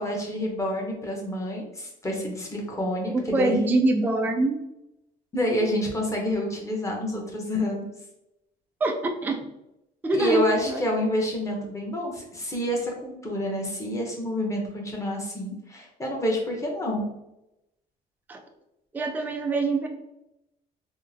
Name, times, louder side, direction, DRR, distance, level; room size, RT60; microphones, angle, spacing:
voice 1, 0.0-3.6 5.3-7.8 10.1-17.1, equal, 20° left, -1 dB, 0.8 m, -28 dB
voice 2, 3.1-4.6 8.8-9.4 10.0-10.8 18.3-18.4 18.9-19.9, right 2 dB, 10° right, 3 dB, 0.3 m, -24 dB
3.7 x 2.1 x 2.7 m, 0.88 s
cardioid pair, 110°, 17 cm